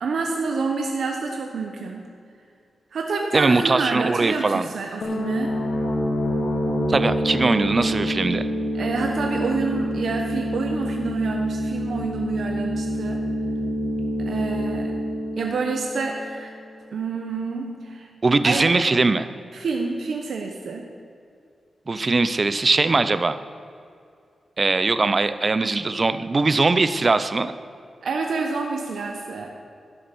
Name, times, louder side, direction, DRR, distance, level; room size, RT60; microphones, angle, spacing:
voice 1, 0.0-2.1 2.9-5.6 8.7-13.2 14.2-15.0 15.4-16.5 16.9-18.8 19.5-20.9 28.0-29.5, right 4 dB, 75° right, 2 dB, 1.0 m, -28 dB
voice 2, 3.3-4.7 6.9-8.5 18.2-19.3 21.9-23.4 24.6-27.5, right 3 dB, 35° right, 12 dB, 0.6 m, -21 dB
sound 1, 5.0-16.5, equal, 80° left, 3.1 m, -26 dB
12.0 x 10.0 x 6.1 m, 2.4 s
wide cardioid pair, 115°, 0 cm